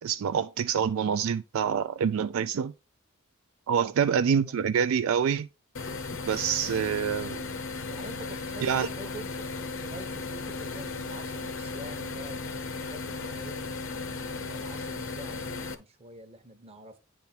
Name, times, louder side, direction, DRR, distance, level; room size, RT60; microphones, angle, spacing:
voice 1, 0.0-2.7 3.7-5.5 6.2-7.4 8.6-8.9, right 7 dB, 70° right, 0.3 m, -26 dB
sound 1, 5.7-15.7, left 3 dB, 60° left, 0.7 m, -36 dB
voice 2, 7.9-13.6 14.1-17.0, right 1 dB, 25° right, 0.9 m, -47 dB
9.2 x 3.5 x 4.2 m
head